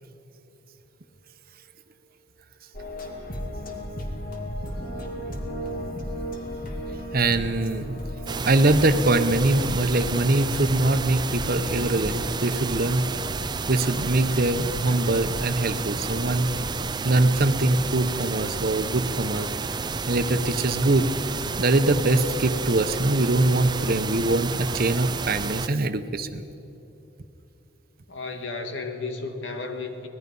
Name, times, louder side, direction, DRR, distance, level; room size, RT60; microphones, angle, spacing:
sound 1, 2.7-17.4, equal, 50° left, 2.1 m, -36 dB
voice 1, 7.1-8.0 8.5-13.1 13.7-16.5 17.0-19.5 20.1-21.1 21.6-26.4, right 2 dB, 55° right, 10 dB, 0.9 m, -23 dB
sound 2, 8.3-25.7, right 5 dB, 25° right, 0.4 m, -31 dB
voice 2, 28.1-30.1, left 3 dB, 80° left, 5 dB, 2.0 m, -33 dB
24.5 x 19.0 x 5.5 m, 3.0 s
head